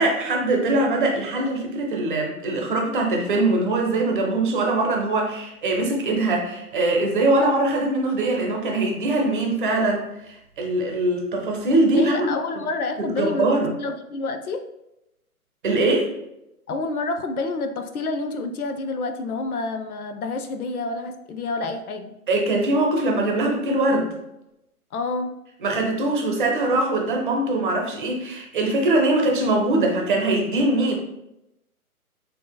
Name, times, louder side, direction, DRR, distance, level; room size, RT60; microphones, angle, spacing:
voice 1, 0.0-12.3 13.0-13.8 15.6-16.1 22.3-24.1 25.6-30.9, right 2 dB, 35° right, 1 dB, 0.8 m, -22 dB
voice 2, 11.8-13.5 13.8-14.7 16.7-22.1 24.9-25.3, left 3 dB, 75° left, 7 dB, 0.7 m, -28 dB
6.1 x 2.8 x 2.2 m, 0.87 s
hypercardioid pair, 145°, 45 cm